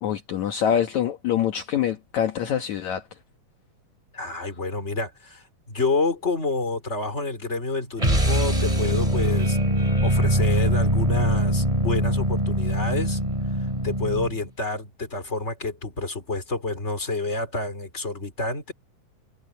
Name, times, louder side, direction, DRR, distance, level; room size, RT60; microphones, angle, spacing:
voice 1, 0.0-3.0, left 9 dB, 65° left, 2.6 m, -25 dB
voice 2, 4.1-9.6 10.0-13.2 13.8-18.7, left 3 dB, 20° left, 4.3 m, -28 dB
sound 1, 8.0-14.4, right 1 dB, 10° right, 3.9 m, -22 dB
omnidirectional pair, 3.9 m